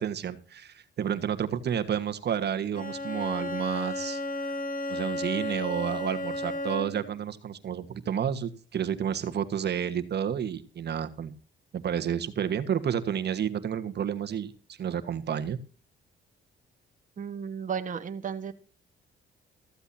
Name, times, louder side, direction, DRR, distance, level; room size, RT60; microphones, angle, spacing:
voice 1, 0.0-4.6 4.9-11.3 11.7-15.6, right 8 dB, 55° right, 1.4 m, -31 dB
Bowed string instrument, 2.7-7.2, left 1 dB, 40° left, 2.2 m, -33 dB
voice 2, 17.2-18.5, right 7 dB, 40° right, 1.4 m, -34 dB
15.0 x 14.5 x 2.8 m
cardioid pair, 90°, 20 cm